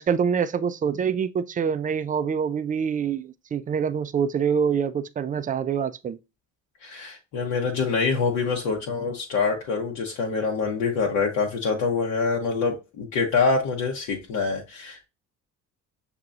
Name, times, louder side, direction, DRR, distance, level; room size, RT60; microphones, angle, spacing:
voice 1, 0.0-6.2, right 7 dB, 20° right, 0.4 m, -25 dB
voice 2, 6.8-15.1, left 4 dB, 60° left, 1.0 m, -25 dB
6.4 x 2.7 x 2.4 m
hypercardioid pair, 60°, 40 cm